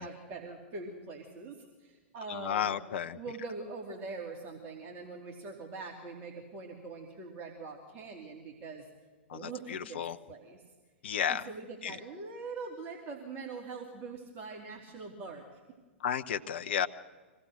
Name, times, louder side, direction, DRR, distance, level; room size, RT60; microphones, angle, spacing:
voice 1, 0.0-2.7 3.1-8.9 9.3-10.6 11.3-15.6, right 3 dB, 30° right, 1 dB, 2.8 m, -43 dB
voice 2, 2.3-3.2 9.3-10.2 11.0-11.4 11.8-12.0 16.0-16.9, left 8 dB, 60° left, 9 dB, 0.8 m, -33 dB
25.0 x 17.0 x 6.5 m, 1.4 s
figure-of-eight pair, 105°, 7 cm